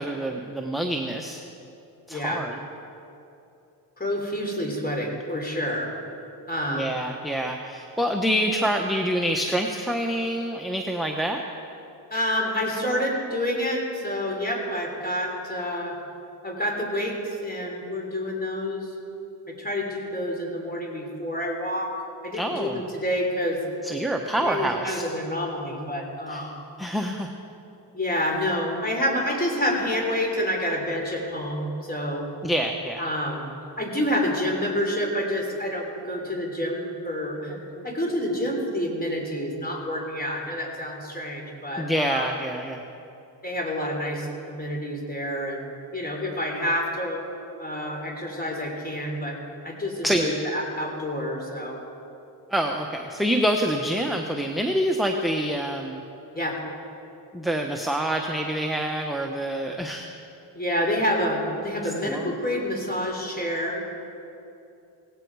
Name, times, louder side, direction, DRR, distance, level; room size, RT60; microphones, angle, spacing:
voice 1, 0.0-1.4 2.1-2.6 6.7-11.4 22.3-22.8 23.8-25.0 25.8-25.9 26.3-26.4 26.8-27.3 32.4-33.1 41.8-42.8 50.0-50.4 52.5-56.0 57.3-60.1 62.0-62.3, equal, ahead, 2 dB, 1.0 m, -26 dB
voice 2, 2.1-2.4 4.0-5.9 6.5-6.9 12.1-16.0 16.4-18.9 19.5-22.0 22.2-23.6 24.4-26.5 27.9-32.3 33.0-33.5 33.8-42.3 43.4-45.7 45.9-47.3 47.6-49.4 49.6-51.8 56.3-56.6 60.5-63.8, equal, 20° left, 1 dB, 3.6 m, -28 dB
17.5 x 17.0 x 4.8 m, 2.8 s
cardioid pair, 75°, 43 cm